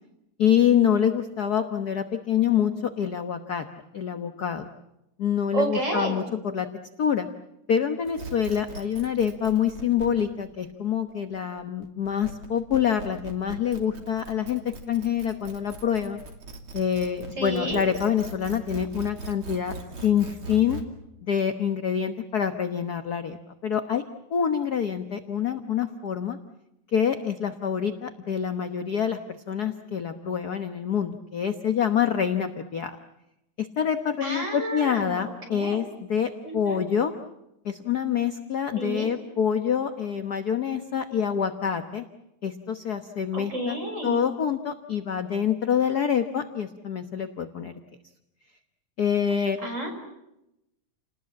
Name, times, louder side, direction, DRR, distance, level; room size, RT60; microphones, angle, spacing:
voice 1, 0.4-3.7 3.9-4.7 5.2-6.7 7.0-7.3 7.7-14.6 14.9-16.2 16.7-19.7 20.0-20.8 21.2-23.4 23.6-24.0 24.3-26.4 26.9-29.2 29.5-33.0 33.6-37.1 37.6-42.0 42.4-43.8 44.0-47.7 49.0-49.6, left 8 dB, 55° left, 8 dB, 1.1 m, -26 dB
voice 2, 5.5-6.2 17.4-17.8 34.2-35.2 35.5-35.8 36.4-36.8 38.8-39.1 43.3-44.2 49.6-49.9, right 2 dB, 25° right, 2 dB, 6.0 m, -30 dB
sound 1, 8.1-20.8, right 4 dB, 45° right, 3.5 m, -40 dB
30.0 x 19.5 x 8.5 m, 0.88 s
omnidirectional pair, 3.4 m